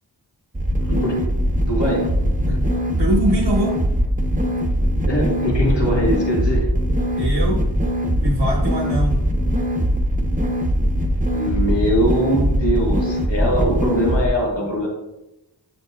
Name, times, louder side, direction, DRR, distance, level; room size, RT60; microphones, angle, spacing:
sound 1, 0.5-14.2, equal, 20° right, 0.7 m, -21 dB
voice 1, 0.8-1.3 1.7-2.1 5.1-6.7 11.3-14.9, equal, 80° left, -3 dB, 1.8 m, -22 dB
voice 2, 3.0-3.8 7.1-7.6 8.2-9.3, right 1 dB, 85° right, -1 dB, 1.2 m, -22 dB
8.0 x 6.8 x 2.4 m, 0.91 s
wide cardioid pair, 55°, 42 cm